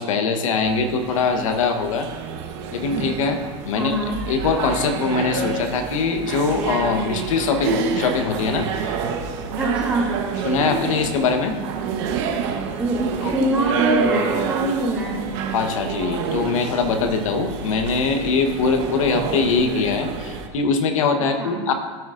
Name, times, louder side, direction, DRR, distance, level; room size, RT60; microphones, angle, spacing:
voice 1, 0.0-2.1 2.7-3.4 3.6-9.0 10.4-11.6 13.2-13.3 15.5-21.7, left 4 dB, 85° left, 6 dB, 1.1 m, -22 dB
sound 1, 0.6-20.5, right 5 dB, 60° right, 1.0 m, -28 dB
voice 2, 3.7-4.2 9.6-10.1 12.8-15.2 21.2-21.5, right 1 dB, 10° right, -11 dB, 2.6 m, -24 dB
13.5 x 6.3 x 2.5 m, 1.4 s
supercardioid pair, 125°, 17 cm